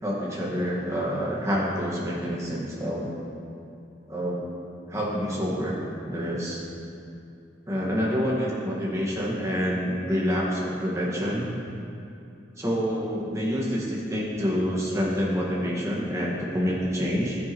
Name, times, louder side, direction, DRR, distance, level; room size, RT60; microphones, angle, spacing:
voice 1, 0.0-3.1 4.1-4.4 4.9-5.8 6.1-6.6 7.7-11.5 12.6-17.4, equal, 15° right, -5 dB, 1.7 m, -27 dB
12.5 x 9.5 x 3.1 m, 2.6 s
head